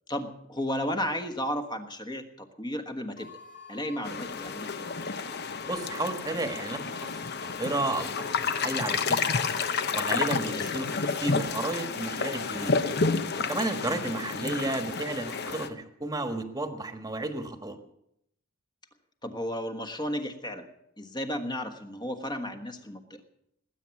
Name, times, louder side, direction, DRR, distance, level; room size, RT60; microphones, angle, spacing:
voice 1, 0.1-3.3 3.7-4.9 10.4-10.7 13.9-14.1 19.2-20.6 21.0-23.2, equal, 20° left, 7 dB, 1.4 m, -34 dB
sound 1, 3.2-9.0, left 6 dB, 40° left, 2.0 m, -47 dB
sound 2, 4.0-15.7, left 5 dB, 55° left, 0.9 m, -30 dB
voice 2, 5.7-9.3 9.9-12.8 13.4-17.8, right 2 dB, 20° right, 8 dB, 1.4 m, -33 dB
19.5 x 9.1 x 7.2 m, 0.76 s
head